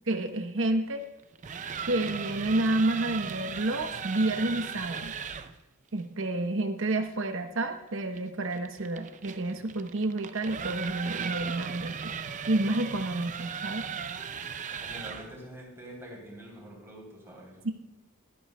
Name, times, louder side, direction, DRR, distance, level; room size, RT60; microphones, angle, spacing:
voice 1, 0.1-1.0 1.9-5.2 5.9-12.1 12.5-13.9 17.6-17.7, right 2 dB, 65° right, 6 dB, 1.0 m, -29 dB
sound 1, 1.2-5.5 8.1-15.4, right 6 dB, 35° right, 0.5 m, -37 dB
voice 2, 14.8-17.7, right 1 dB, 10° right, -3 dB, 3.5 m, -45 dB
12.5 x 12.5 x 2.2 m, 1.0 s
head